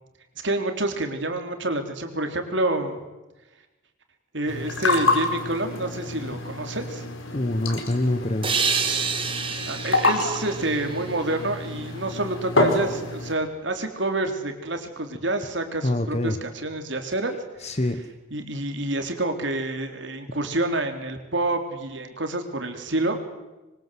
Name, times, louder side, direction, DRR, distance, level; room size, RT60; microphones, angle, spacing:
voice 1, 0.4-3.0 4.3-7.1 9.7-17.7 18.3-23.2, right 2 dB, 65° right, 6 dB, 3.7 m, -28 dB
sound 1, 4.5-13.3, left 2 dB, 85° left, 4.7 m, -27 dB
voice 2, 7.3-8.5 15.8-16.4 17.6-18.1, left 1 dB, 35° left, 9 dB, 1.2 m, -25 dB
sound 2, 8.4-11.9, right 5 dB, 25° right, 2.6 m, -28 dB
26.0 x 24.0 x 7.8 m, 1.1 s
head